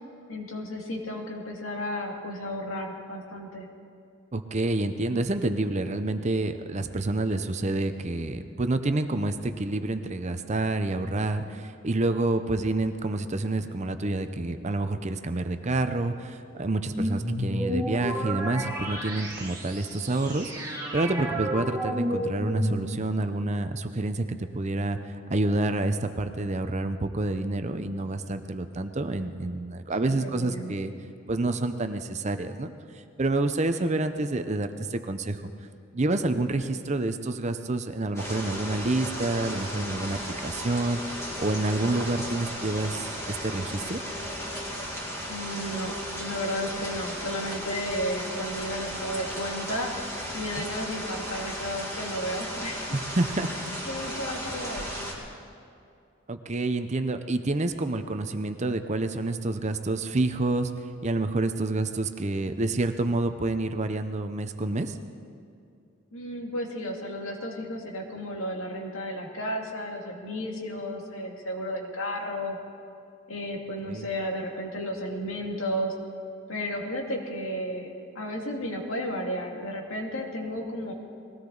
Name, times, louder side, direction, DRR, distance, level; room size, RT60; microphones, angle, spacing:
voice 1, 0.3-3.7 30.0-30.7 45.3-49.9 50.3-52.9 53.9-55.1 66.1-72.6 73.3-75.9 76.5-80.9, equal, 75° left, 1 dB, 2.2 m, -33 dB
voice 2, 4.3-24.2 24.5-30.9 31.3-32.7 33.2-35.4 35.9-41.0 41.4-44.0 50.6-50.7 52.9-53.5 56.3-60.7 61.0-65.0 73.9-74.1, right 2 dB, 35° right, 8 dB, 0.6 m, -28 dB
sound 1, 16.9-23.2, equal, 15° right, 2.1 m, -31 dB
sound 2, 38.2-55.1, equal, 15° left, 2.4 m, -35 dB
20.5 x 16.5 x 4.0 m, 2.4 s
head